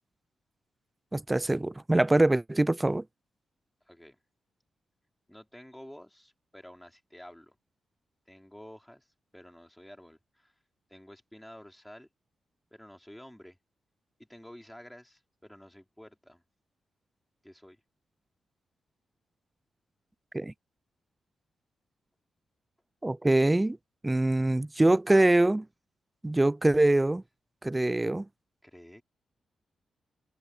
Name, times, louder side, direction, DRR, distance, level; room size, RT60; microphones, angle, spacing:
voice 1, 1.1-3.0 20.3-20.5 23.0-23.8 24.0-25.6 26.2-27.2 27.6-28.3, right 2 dB, 10° right, 0.4 m, -24 dB
voice 2, 3.9-4.2 5.3-7.6 8.3-9.1 9.3-10.5 10.9-12.1 12.7-13.6 14.2-16.4 17.4-17.8 24.9-25.5 28.6-29.0, equal, 5° left, 3.8 m, -50 dB
wide cardioid pair, 135°, 0 cm